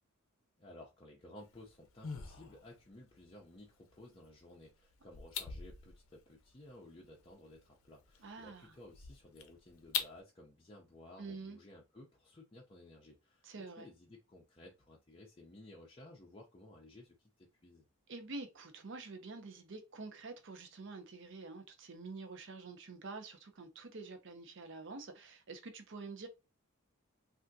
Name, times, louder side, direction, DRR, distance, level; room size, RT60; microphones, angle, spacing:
voice 1, 0.6-13.4 13.8-17.9, left 1 dB, 25° left, 0.5 m, -56 dB
sound 1, 1.4-10.2, left 7 dB, 70° left, 0.6 m, -46 dB
voice 2, 8.2-8.7 11.2-11.6 13.4-13.9 18.1-26.3, right 3 dB, 55° right, 0.6 m, -47 dB
3.4 x 2.5 x 2.6 m
head